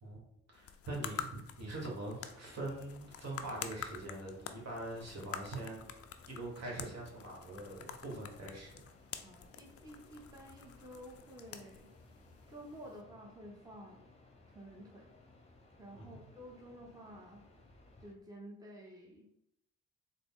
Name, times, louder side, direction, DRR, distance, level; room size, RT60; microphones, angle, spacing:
sound 1, 0.5-13.0, left 8 dB, 50° left, 0.4 m, -48 dB
voice 1, 0.5-5.9 6.3-8.8 16.0-16.3, right 2 dB, 55° right, -2 dB, 1.4 m, -43 dB
sound 2, 2.0-18.1, left 2 dB, 20° left, 0.8 m, -61 dB
voice 2, 9.2-11.9 12.5-14.1 14.5-15.1 15.8-17.4 18.0-19.2, equal, 10° right, -2 dB, 0.9 m, -52 dB
3.7 x 2.1 x 3.7 m, 0.80 s
supercardioid pair, 55°, 32 cm